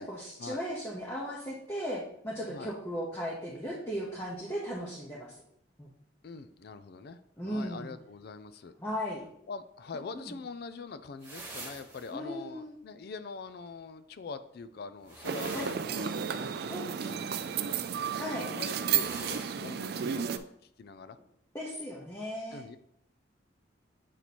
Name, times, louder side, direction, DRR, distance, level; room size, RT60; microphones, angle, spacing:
voice 1, 0.0-5.3 5.8-5.9 7.4-7.9 8.8-9.2 10.1-10.3 12.1-12.7 15.5-15.7 16.7-17.2 18.2-18.5 21.5-22.6, equal, 15° left, -5 dB, 0.9 m, -37 dB
voice 2, 6.2-8.7 9.5-16.7 17.1-17.4 17.7-17.8 18.4-20.4 20.8-21.2 22.5-22.8, left 4 dB, 50° left, 12 dB, 0.4 m, -43 dB
sound 1, 11.2-12.1 15.0-16.3 18.9-19.7, right 2 dB, 15° right, 1.5 m, -45 dB
sound 2, 15.2-20.4, right 8 dB, 50° right, 0.3 m, -33 dB
8.1 x 3.0 x 4.2 m, 0.72 s
head